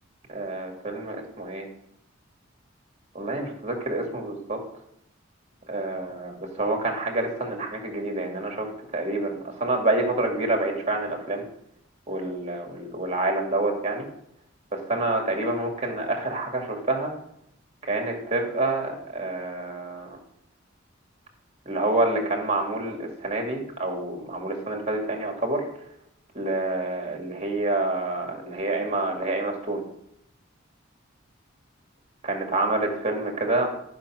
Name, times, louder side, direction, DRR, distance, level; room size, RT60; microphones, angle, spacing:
voice 1, 0.3-1.7 3.1-4.6 5.7-11.4 12.1-14.1 14.7-17.1 17.9-20.2 21.7-25.6 26.3-29.8 32.2-33.7, right 2 dB, 35° right, 2 dB, 2.3 m, -27 dB
12.5 x 5.9 x 6.3 m, 0.74 s
head